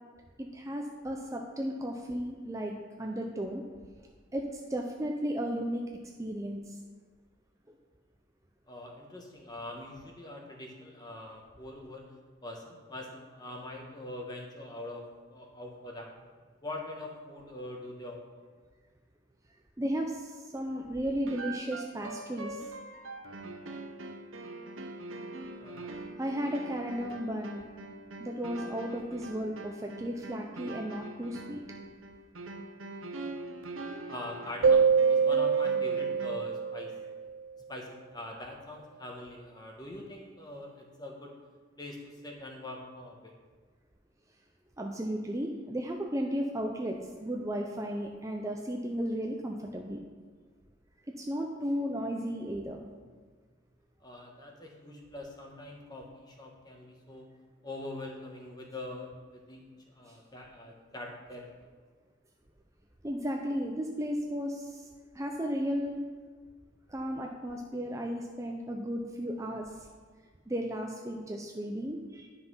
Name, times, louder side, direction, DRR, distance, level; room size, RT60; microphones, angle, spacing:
voice 1, 0.4-3.6 4.3-5.8 6.2-6.8 7.7-7.8 19.8-22.6 26.2-27.6 28.2-31.6 44.8-50.0 51.2-52.9 60.1-60.2 63.0-64.9 65.1-66.0 66.9-69.9 70.5-72.3, equal, 15° right, 1 dB, 0.6 m, -34 dB
voice 2, 8.7-12.1 12.4-16.1 16.6-18.4 25.6-26.0 34.1-36.9 37.7-41.4 41.8-43.3 54.0-57.2 57.6-59.6 59.9-61.7, left 1 dB, 20° left, 0 dB, 1.3 m, -43 dB
sound 1, 21.3-36.6, right 2 dB, 85° right, 0.9 m, -43 dB
Keyboard (musical), 34.6-37.4, right 5 dB, 65° right, 0.3 m, -25 dB
10.5 x 5.7 x 5.6 m, 1.5 s
head